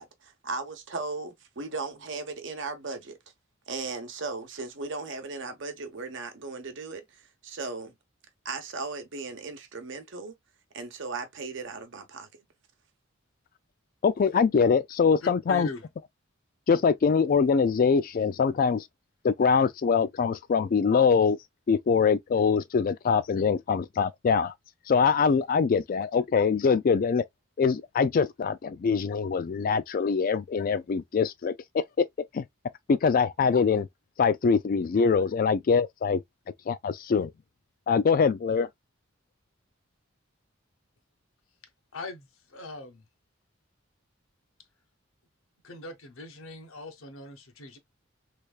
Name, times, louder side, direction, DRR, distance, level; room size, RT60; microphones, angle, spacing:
voice 1, 0.0-3.2 3.7-7.9 8.4-10.4 10.7-12.3, right 3 dB, 60° right, 0.9 m, -37 dB
voice 2, 14.0-15.7 16.7-18.8 19.2-21.4 21.7-24.5 24.9-27.2 27.6-31.8 32.3-32.4 32.9-33.9 34.2-36.2 36.7-37.3 37.9-38.7, left 5 dB, 45° left, 0.3 m, -23 dB
voice 3, 15.2-15.8 41.9-43.0 45.6-47.8, left 2 dB, 85° left, 0.8 m, -41 dB
3.3 x 3.2 x 2.2 m
head